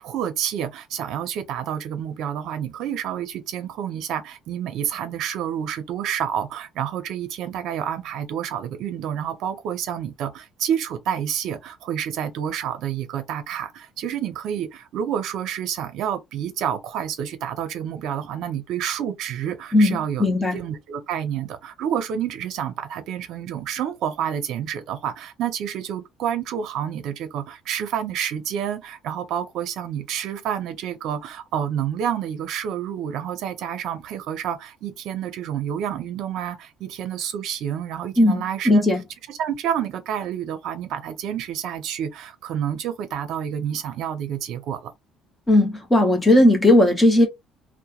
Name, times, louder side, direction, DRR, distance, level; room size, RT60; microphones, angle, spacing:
voice 1, 0.0-20.3 20.5-38.8 39.3-44.9, right 9 dB, 60° right, 0.6 m, -29 dB
voice 2, 19.7-20.6 38.2-39.0 45.5-47.3, left 1 dB, 10° left, 0.8 m, -17 dB
2.9 x 2.1 x 2.3 m
cardioid pair, 170°, 0 cm